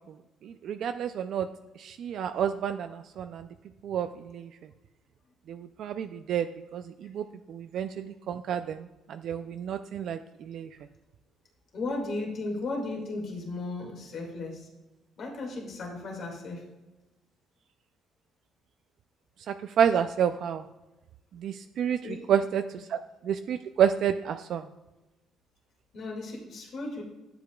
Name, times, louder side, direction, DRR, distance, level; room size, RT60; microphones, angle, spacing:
voice 1, 0.4-1.5 1.8-3.5 3.8-4.5 5.5-6.5 6.7-10.7 19.5-20.6 21.3-23.0 23.2-24.6, right 8 dB, 65° right, 8 dB, 0.3 m, -29 dB
voice 2, 11.7-14.7 15.2-16.6 22.0-22.3 25.9-27.0, left 2 dB, 55° left, 0 dB, 2.0 m, -35 dB
11.5 x 7.8 x 2.3 m, 1.0 s
cardioid pair, 115°, 0 cm